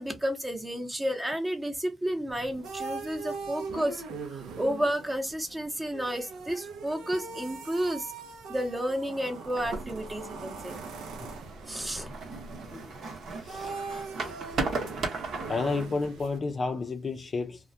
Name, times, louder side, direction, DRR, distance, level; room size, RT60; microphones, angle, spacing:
voice 1, 0.0-4.0 4.3-8.1 8.5-10.8 11.7-12.1, equal, 15° right, 0.7 m, -31 dB
sound 1, 2.3-16.4, right 4 dB, 85° right, 0.5 m, -41 dB
sound 2, 9.6-15.9, right 3 dB, 60° right, 0.8 m, -37 dB
voice 2, 13.4-14.4 15.5-17.6, left 3 dB, 35° left, 0.4 m, -32 dB
2.2 x 2.1 x 2.6 m
cardioid pair, 90°, 0 cm